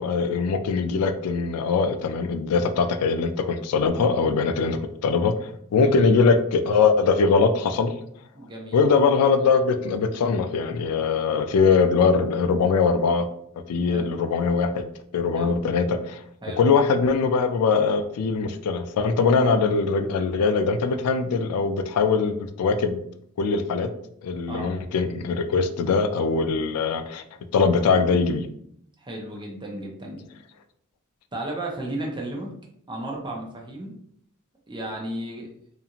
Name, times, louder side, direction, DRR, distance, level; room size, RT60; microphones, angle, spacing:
voice 1, 0.0-7.9 8.7-13.3 13.7-14.9 15.1-16.2 16.6-23.0 23.4-23.9 24.2-27.2 27.5-28.5, left 4 dB, 90° left, 9 dB, 0.3 m, -22 dB
voice 2, 5.7-6.1 8.3-8.8 13.8-14.1 15.4-15.6 16.4-16.7 24.5-24.7 29.0-30.3 31.3-32.5 32.9-33.9 34.7-35.5, right 1 dB, 20° right, -1 dB, 0.6 m, -34 dB
2.5 x 2.4 x 2.8 m, 0.69 s
head